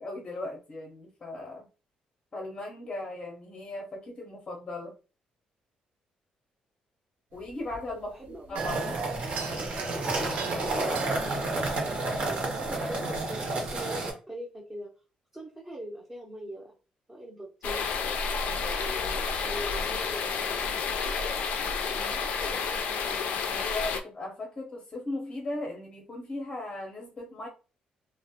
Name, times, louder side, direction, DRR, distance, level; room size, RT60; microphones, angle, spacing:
voice 1, 0.0-1.7 2.3-4.9 7.3-8.8 23.5-27.5, left 2 dB, 30° left, -1 dB, 0.6 m, -37 dB
sound 1, 7.3-12.4, right 6 dB, 80° right, 0.3 m, -41 dB
voice 2, 7.9-9.7 12.3-14.9 15.3-16.7 17.1-17.9 18.6-20.8 21.9-23.2, right 1 dB, 10° right, -4 dB, 0.6 m, -42 dB
sound 2, 8.6-14.1, right 2 dB, 50° right, 0.7 m, -30 dB
sound 3, 17.6-24.0, left 5 dB, 75° left, 0.3 m, -30 dB
2.4 x 2.0 x 2.7 m, 0.35 s
cardioid pair, 110°, 3 cm